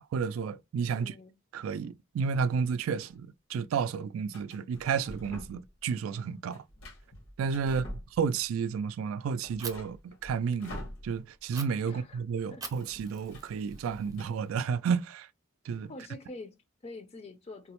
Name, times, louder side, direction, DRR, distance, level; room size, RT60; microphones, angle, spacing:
voice 1, 0.0-1.1 1.5-6.6 7.4-7.9 8.2-10.8 11.0-15.3 15.7-15.9, right 6 dB, 85° right, 0.3 m, -31 dB
voice 2, 0.9-1.3 7.6-8.0 11.8-12.2 12.5-12.6 15.9-17.7, left 2 dB, 30° left, 0.4 m, -46 dB
sound 1, 2.3-3.1 4.3-5.8 6.1-8.6 8.9-9.0 9.3-11.5 11.8-11.9 12.2-14.3, left 1 dB, 85° left, 1.2 m, -47 dB
Fire, 9.6-9.7 11.5-11.6 12.6-14.6, right 5 dB, 20° right, 0.5 m, -44 dB
3.8 x 2.0 x 2.9 m
head